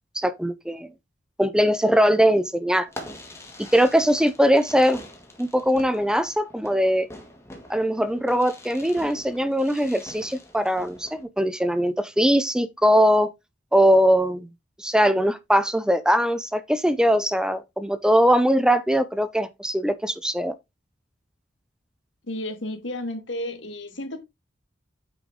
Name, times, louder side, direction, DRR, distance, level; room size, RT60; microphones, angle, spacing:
voice 1, 0.1-0.9 1.4-2.9 3.7-5.0 5.4-7.1 7.7-13.3 13.7-14.5 14.8-20.5, equal, 5° right, 0.5 m, -21 dB
Fireworks, 2.9-11.2, left 1 dB, 15° left, 1.9 m, -44 dB
voice 2, 22.3-24.2, left 1 dB, 80° left, 2.0 m, -32 dB
8.8 x 5.1 x 3.6 m
head